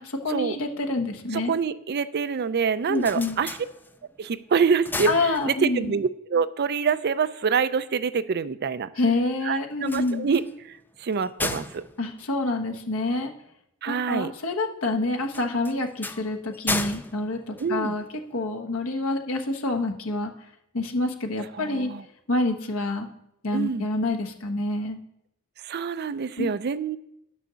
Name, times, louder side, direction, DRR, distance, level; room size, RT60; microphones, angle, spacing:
voice 1, 0.0-1.5 2.9-3.4 5.0-5.9 9.0-10.3 12.0-13.3 13.9-18.0 18.3-20.3 20.7-21.9 22.3-23.1 23.4-25.0 26.4-26.5, left 2 dB, 70° left, 3 dB, 1.3 m, -27 dB
voice 2, 1.3-3.6 4.2-8.9 9.4-11.8 13.8-14.3 17.6-17.9 21.5-22.1 23.5-23.9 25.6-27.0, right 6 dB, 50° right, 14 dB, 0.4 m, -26 dB
sound 1, 2.7-4.2 4.6-5.9 9.7-13.2 15.3-18.3, left 2 dB, 10° left, 0.4 m, -35 dB
11.0 x 6.2 x 6.8 m, 0.81 s
head